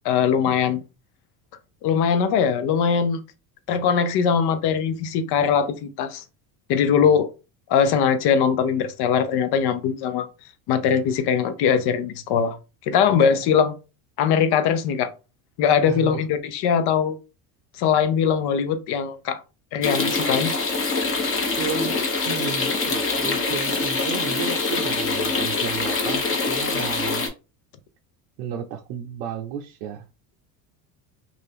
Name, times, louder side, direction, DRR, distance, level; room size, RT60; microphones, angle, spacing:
voice 1, 0.0-0.8 1.8-3.2 3.7-6.2 6.7-7.3 7.7-10.3 10.7-12.6 12.8-13.7 14.2-15.1 15.6-17.2 17.8-19.4 19.7-20.5, left 7 dB, 55° left, 0.7 m, -21 dB
voice 2, 15.8-16.2 21.6-22.0 22.2-27.3 28.4-30.1, right 8 dB, 75° right, 0.6 m, -33 dB
sound 1, 19.8-27.3, left 3 dB, 25° left, 0.9 m, -24 dB
2.6 x 2.4 x 3.4 m
hypercardioid pair, 85°, 48 cm